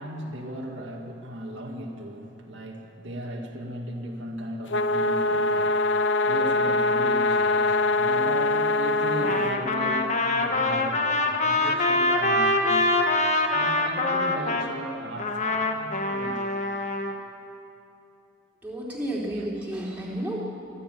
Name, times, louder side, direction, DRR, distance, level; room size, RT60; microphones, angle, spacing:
voice 1, 0.0-5.8 6.2-12.9 13.5-16.4 19.3-19.4, right 1 dB, 60° right, 0 dB, 2.1 m, -36 dB
sound 1, 4.7-9.5, left 2 dB, 60° left, 0.7 m, -23 dB
Trumpet, 9.2-14.7 15.2-17.1, left 2 dB, 35° left, 1.4 m, -24 dB
voice 2, 18.6-20.4, right 1 dB, 10° right, -5 dB, 3.4 m, -31 dB
25.0 x 12.5 x 9.3 m, 2.8 s
head